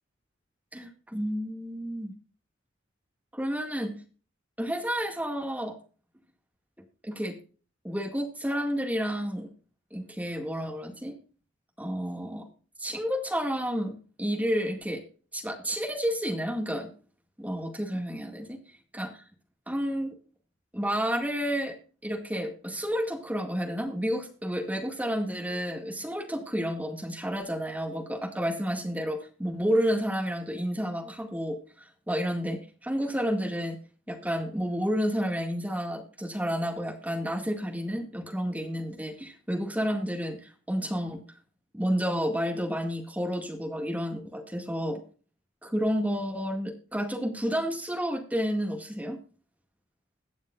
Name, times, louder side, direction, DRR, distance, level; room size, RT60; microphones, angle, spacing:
voice 1, 0.7-2.1 3.3-4.0 4.6-5.8 7.0-7.4 7.8-9.5 9.9-11.2 11.8-12.5 12.8-15.0 15.3-16.9 17.4-18.6 18.9-19.2 19.7-20.1 20.7-21.8 22.0-33.8 34.1-41.2 41.7-45.0 45.6-49.2, equal, 10° right, 3 dB, 2.0 m, -30 dB
21.5 x 7.2 x 2.5 m, 0.38 s
head